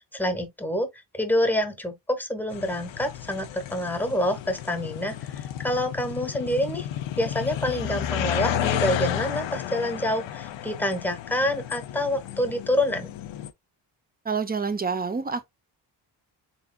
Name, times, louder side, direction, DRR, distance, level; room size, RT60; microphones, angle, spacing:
voice 1, 0.0-6.9 7.2-13.1, left 1 dB, 5° left, 1.0 m, -27 dB
sound 1, 2.5-13.5, left 11 dB, 85° left, 0.7 m, -32 dB
voice 2, 14.2-15.5, right 5 dB, 20° right, 0.7 m, -27 dB
4.1 x 3.5 x 2.3 m
cardioid pair, 90°, 43 cm